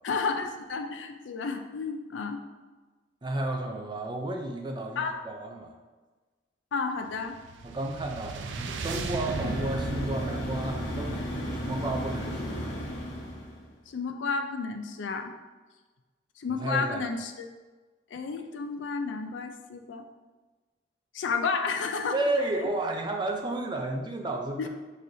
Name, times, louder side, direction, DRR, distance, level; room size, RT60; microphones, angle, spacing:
voice 1, 0.0-2.4 5.0-5.2 6.7-7.4 9.4-9.5 13.9-15.3 16.4-17.5 18.1-20.1 21.1-22.2 24.6-24.7, left 4 dB, 90° left, 6 dB, 0.4 m, -31 dB
voice 2, 3.2-5.8 7.6-12.5 16.5-17.0 22.1-24.7, right 2 dB, 25° right, 2 dB, 0.5 m, -32 dB
sound 1, 7.1-12.5, right 4 dB, 85° right, 0.4 m, -38 dB
sound 2, 9.2-13.7, equal, 70° left, 1.4 m, -34 dB
4.7 x 4.1 x 2.7 m, 1.3 s
head